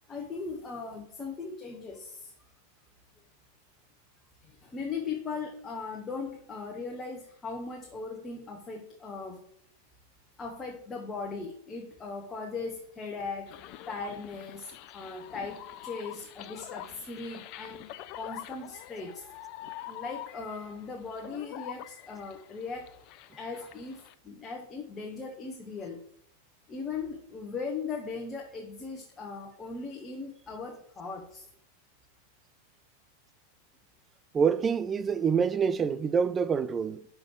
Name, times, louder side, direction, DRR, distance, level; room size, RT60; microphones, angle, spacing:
voice 1, 0.1-2.3 4.4-9.4 10.4-13.6 13.9-19.2 19.9-22.9 23.4-26.0 26.7-31.4, left 4 dB, 20° left, 1.1 m, -38 dB
sound 1, 13.5-24.1, left 13 dB, 40° left, 0.4 m, -46 dB
voice 2, 34.3-37.1, right 6 dB, 20° right, 0.4 m, -26 dB
6.1 x 5.1 x 6.2 m
figure-of-eight pair, 90°, 0 cm